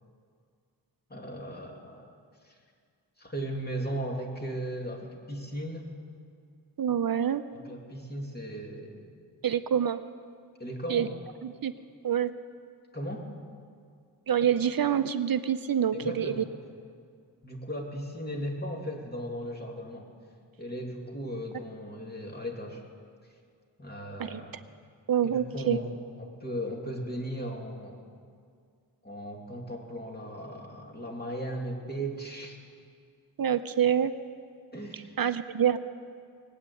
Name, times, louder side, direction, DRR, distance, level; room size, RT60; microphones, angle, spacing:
voice 1, 1.1-2.1 2.4-2.6 3.2-5.9 7.5-9.1 10.6-11.1 12.9-13.3 15.9-16.5 17.4-20.1 20.6-22.8 23.8-24.6 25.2-28.0 29.0-32.6 34.7-35.2, equal, 20° left, 0 dB, 2.6 m, -37 dB
voice 2, 6.8-7.4 9.4-10.0 10.9-11.1 11.4-11.7 12.0-12.3 14.3-16.4 24.2-24.4 25.1-25.8 33.4-34.1 34.9-35.8, right 9 dB, 55° right, 11 dB, 0.7 m, -26 dB
19.5 x 8.8 x 8.4 m, 2.2 s
wide cardioid pair, 75°, 43 cm